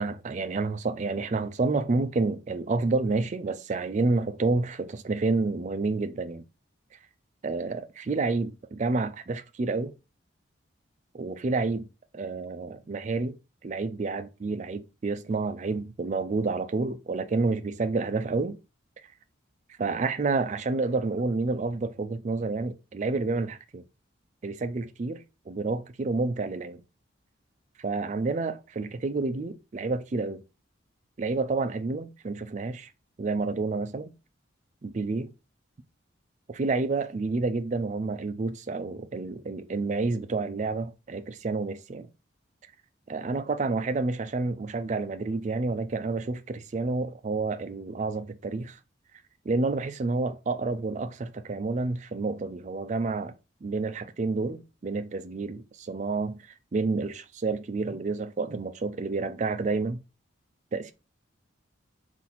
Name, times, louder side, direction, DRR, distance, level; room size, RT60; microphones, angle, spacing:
voice 1, 0.0-6.4 7.4-9.9 11.1-11.9 12.1-13.4 13.6-18.6 19.8-23.8 24.4-26.8 27.8-30.4 31.2-32.9 33.2-34.1 34.8-35.3 36.5-42.1 43.1-48.8 49.5-53.3 53.6-60.0 60.7-60.9, right 3 dB, 35° right, 0.4 m, -29 dB
4.1 x 2.6 x 4.1 m
head